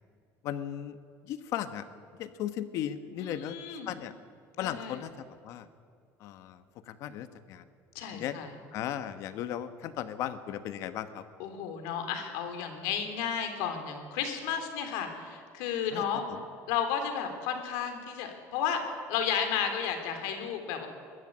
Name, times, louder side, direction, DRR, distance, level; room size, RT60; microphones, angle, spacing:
voice 1, 0.4-1.0 1.2-1.9 2.1-3.6 3.9-4.1 4.6-5.7 6.2-7.7 8.1-8.4 8.7-11.2 15.9-16.5, left 10 dB, 50° left, 11 dB, 1.2 m, -36 dB
voice 2, 3.2-3.9 4.6-5.0 8.0-8.5 11.4-16.3 16.7-20.9, left 7 dB, 80° left, 6 dB, 3.4 m, -33 dB
22.0 x 12.5 x 9.8 m, 2.2 s
cardioid pair, 175°, 7 cm